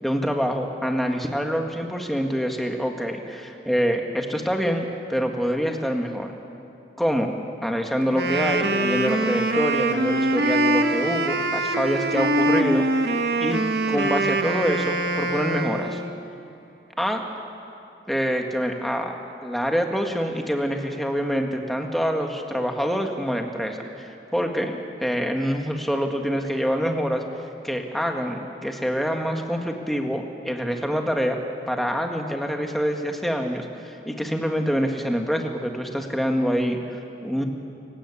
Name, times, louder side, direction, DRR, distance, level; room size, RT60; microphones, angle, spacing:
voice 1, 0.0-6.3 7.0-7.3 7.6-12.9 13.1-16.0 17.0-17.2 18.1-19.1 19.4-27.2 27.6-31.4 31.7-37.4, equal, ahead, 3 dB, 1.8 m, -26 dB
Wind instrument woodwind instrument, 8.0-16.2, right 2 dB, 65° right, 1.4 m, -23 dB
29.0 x 17.0 x 8.6 m, 2.7 s
head